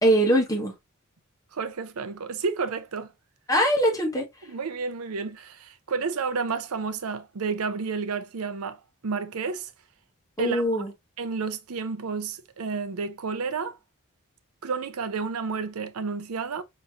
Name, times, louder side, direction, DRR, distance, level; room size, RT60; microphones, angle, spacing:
voice 1, 0.0-0.7 3.5-4.2 10.4-10.9, equal, 15° left, 1.4 m, -22 dB
voice 2, 1.5-3.1 4.5-8.8 9.0-9.7 10.4-10.8 11.2-13.8 14.6-16.6, right 5 dB, 80° right, 0.6 m, -31 dB
5.6 x 3.1 x 2.5 m
head